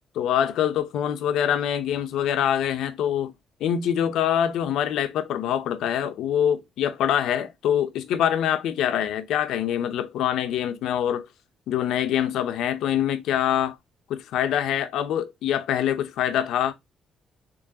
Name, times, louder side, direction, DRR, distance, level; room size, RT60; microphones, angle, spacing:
voice 1, 0.1-3.3 3.6-11.3 11.7-13.8 14.1-16.7, left 10 dB, 85° left, 0.5 m, -24 dB
3.8 x 3.3 x 2.7 m
cardioid pair, 90°, 0 cm